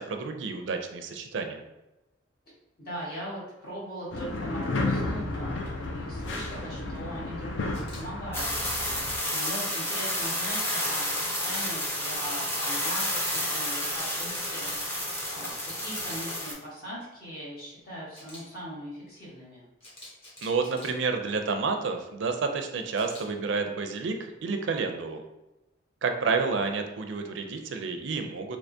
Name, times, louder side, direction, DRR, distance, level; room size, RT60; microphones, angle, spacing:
voice 1, 0.0-1.6 20.4-25.2 26.0-28.6, right 4 dB, 70° right, 5 dB, 0.4 m, -30 dB
voice 2, 2.8-8.5 8.8-19.6, equal, 50° left, -6 dB, 1.4 m, -40 dB
sound 1, 4.1-9.2, left 2 dB, 70° left, 0.5 m, -32 dB
Camera, 7.7-8.0 13.1-13.4 15.5-16.2 18.1-18.4 19.8-20.9 22.9-23.2, left 1 dB, 30° left, 1.1 m, -47 dB
sound 2, 8.3-16.5, left 1 dB, 15° left, 0.6 m, -30 dB
3.4 x 3.0 x 2.6 m, 0.98 s
head